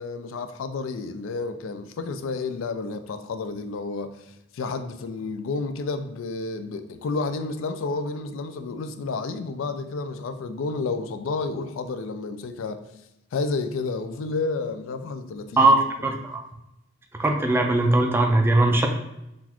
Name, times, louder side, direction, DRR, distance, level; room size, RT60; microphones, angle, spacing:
voice 1, 0.0-4.1 4.5-12.8 13.3-15.7 16.0-16.1, left 3 dB, 75° left, 0.4 m, -30 dB
voice 2, 16.0-16.4 17.2-18.9, right 2 dB, 10° right, 0.4 m, -19 dB
3.8 x 2.4 x 2.9 m
head